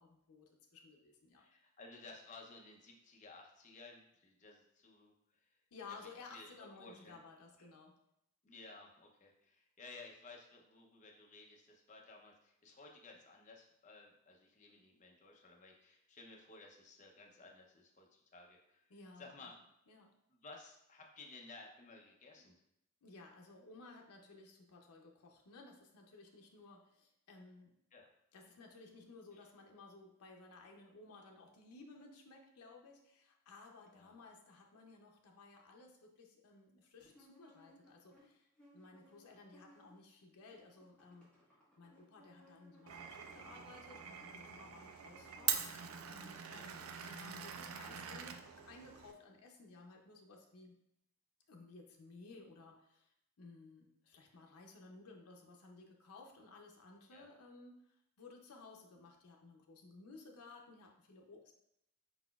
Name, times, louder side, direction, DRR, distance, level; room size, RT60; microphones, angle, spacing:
voice 1, 0.0-1.4 5.7-7.9 18.9-19.5 19.9-20.1 23.0-27.7 28.3-38.5 38.7-41.3 41.8-50.8 51.5-61.5, left 3 dB, 85° left, 1 dB, 0.6 m, -57 dB
voice 2, 1.3-5.5 5.9-7.2 7.6-7.7 8.4-18.8 19.2-19.5 20.3-22.5 27.9-28.1 29.3-29.5 33.9-34.1 43.2-43.5 46.5-46.7 57.1-57.3, left 3 dB, 35° left, 1 dB, 0.6 m, -56 dB
sound 1, 37.0-40.2 40.4-47.1, left 1 dB, 5° left, 1.3 m, -65 dB
Glass, 42.9-49.1, right 8 dB, 70° right, 0.4 m, -43 dB
4.7 x 4.0 x 2.3 m, 0.79 s
head